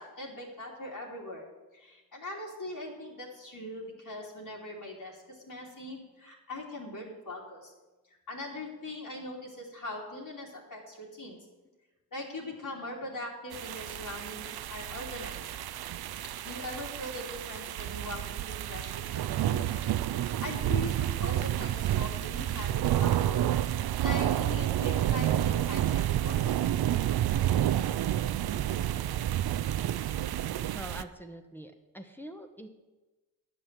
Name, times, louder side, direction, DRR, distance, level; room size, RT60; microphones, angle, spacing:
voice 1, 0.0-1.4 1.7-7.7 8.3-11.4 12.1-15.4 16.4-19.8 20.2-23.5 23.8-26.5, left 1 dB, 60° left, -4 dB, 2.9 m, -41 dB
sound 1, 13.5-31.0, right 12 dB, 70° right, 0.5 m, -30 dB
voice 2, 30.7-32.7, right 1 dB, 5° left, 4 dB, 1.2 m, -44 dB
10.0 x 6.7 x 7.5 m, 1.1 s
cardioid pair, 60°, 38 cm